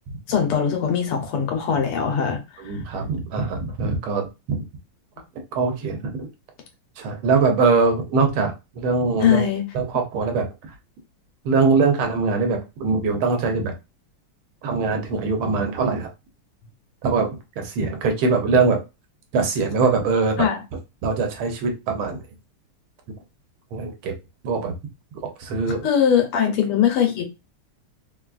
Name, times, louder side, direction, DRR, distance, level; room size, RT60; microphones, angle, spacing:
voice 1, 0.3-2.6 9.2-9.6 20.4-20.6 25.8-27.4, left 8 dB, 90° left, 1.9 m, -21 dB
voice 2, 2.6-4.6 5.5-6.3 7.0-9.5 9.7-10.7 11.5-13.7 14.6-16.1 17.0-17.3 17.6-18.8 19.3-20.5 21.0-22.2 23.7-24.1 24.4-24.7 25.4-25.9, right 4 dB, 75° right, 1.7 m, -22 dB
4.2 x 2.4 x 2.3 m
omnidirectional pair, 2.4 m